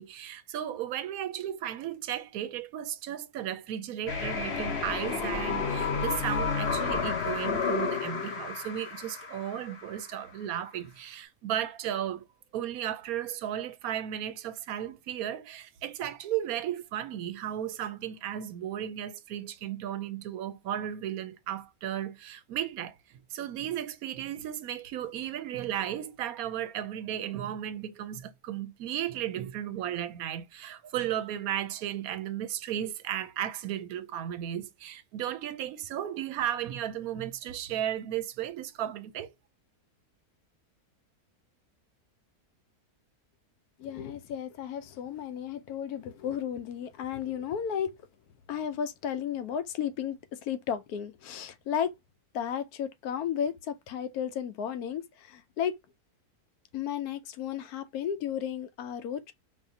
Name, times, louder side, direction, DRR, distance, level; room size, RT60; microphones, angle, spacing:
voice 1, 0.0-12.3 12.5-23.0 23.3-39.3, right 11 dB, 75° right, 1.0 m, -35 dB
sound 1, 4.1-10.0, left 5 dB, 50° left, 1.0 m, -31 dB
voice 2, 43.8-48.0 48.5-51.9 52.3-55.8 56.7-59.3, left 8 dB, 80° left, 1.1 m, -33 dB
4.8 x 2.7 x 2.7 m
omnidirectional pair, 1.6 m